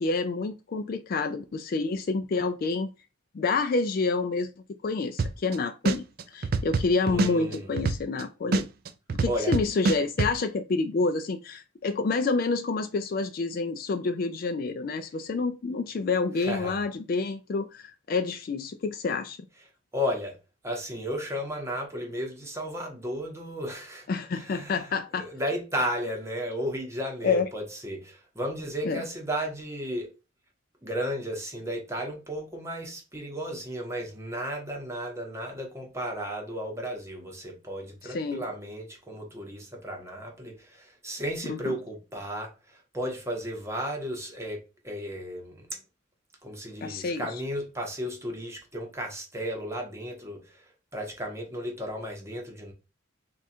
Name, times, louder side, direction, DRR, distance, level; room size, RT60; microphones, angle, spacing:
voice 1, 0.0-2.9 3.3-4.5 4.8-6.0 6.3-8.7 9.2-19.4 24.1-25.3 27.2-27.5 28.8-29.0 38.1-38.4 41.5-41.8 46.8-47.3, left 4 dB, 45° left, 0.3 m, -28 dB
sound 1, 5.2-5.5 5.8-8.2 8.5-10.3, right 3 dB, 45° right, 0.3 m, -25 dB
voice 2, 7.0-7.7 9.3-9.6 16.3-16.8 19.9-20.4 20.6-30.1 30.8-45.8 46.4-52.7, equal, 15° right, 0.8 m, -34 dB
3.6 x 2.4 x 4.2 m
head